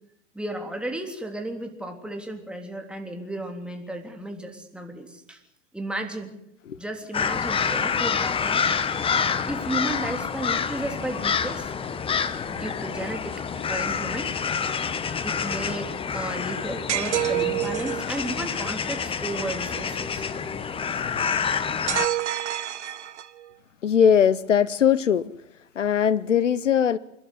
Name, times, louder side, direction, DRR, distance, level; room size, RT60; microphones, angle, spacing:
voice 1, 0.3-5.4 5.7-6.3 6.8-8.6 9.5-11.7 12.5-13.4 13.7-14.3 15.2-20.3, right 1 dB, 5° right, 3 dB, 3.4 m, -33 dB
sound 1, 7.1-22.1, left 6 dB, 15° left, 1.2 m, -27 dB
sound 2, 16.9-18.1 21.9-23.5, right 12 dB, 65° right, 1.7 m, -27 dB
voice 2, 21.0-21.4 23.8-25.3 25.7-27.0, left 8 dB, 75° left, 18 dB, 1.0 m, -21 dB
29.0 x 12.5 x 9.7 m, 0.78 s
figure-of-eight pair, 100°, 37 cm